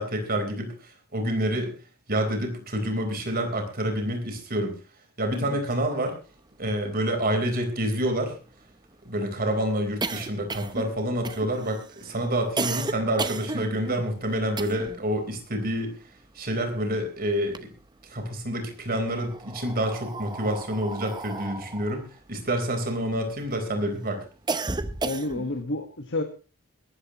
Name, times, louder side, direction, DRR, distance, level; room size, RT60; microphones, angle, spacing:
voice 1, 0.0-1.8 2.1-4.8 5.2-6.2 6.6-8.4 9.0-15.9 16.3-17.7 18.0-24.2, right 1 dB, 45° right, 4 dB, 4.3 m, -28 dB
sound 1, 6.9-7.0 7.2-7.3 7.6-15.1 15.4-17.0 17.3-18.2 19.0-23.5 23.9-25.6, right 3 dB, 20° right, 0.8 m, -34 dB
voice 2, 25.0-26.2, left 2 dB, 55° left, 5 dB, 1.5 m, -30 dB
21.5 x 13.5 x 3.1 m, 0.33 s
head